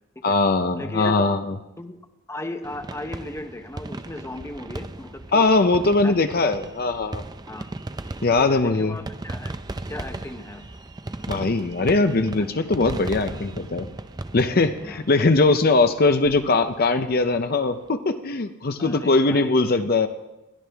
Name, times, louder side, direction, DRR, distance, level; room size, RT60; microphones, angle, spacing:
voice 1, 0.2-1.6 5.3-7.2 8.2-9.0 11.3-13.9 14.3-20.1, left 3 dB, 45° left, 8 dB, 0.6 m, -21 dB
voice 2, 0.8-1.2 1.8-2.0 2.3-5.5 6.0-6.2 7.5-7.7 8.4-9.5 9.9-10.7 11.3-11.5 11.8-11.9 14.8-15.0 18.8-19.6, left 1 dB, 15° left, 7 dB, 0.8 m, -36 dB
sound 1, 2.6-17.6, right 2 dB, 20° right, 0.4 m, -37 dB
21.0 x 13.0 x 3.4 m, 0.99 s
head